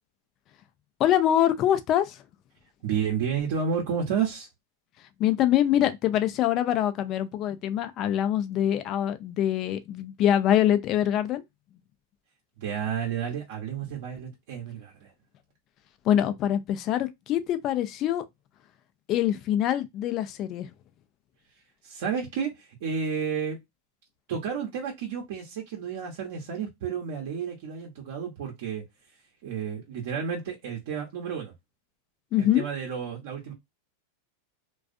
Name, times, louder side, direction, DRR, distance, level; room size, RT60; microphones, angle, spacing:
voice 1, 1.0-2.2 5.2-11.4 16.0-18.2 19.1-20.7 32.3-32.6, left 11 dB, 40° left, 0.5 m, -24 dB
voice 2, 2.8-4.5 12.6-15.1 21.8-23.6 24.3-28.8 29.4-31.5 32.4-33.5, right 7 dB, 65° right, 0.8 m, -31 dB
2.4 x 2.3 x 2.4 m
hypercardioid pair, 110°, 0 cm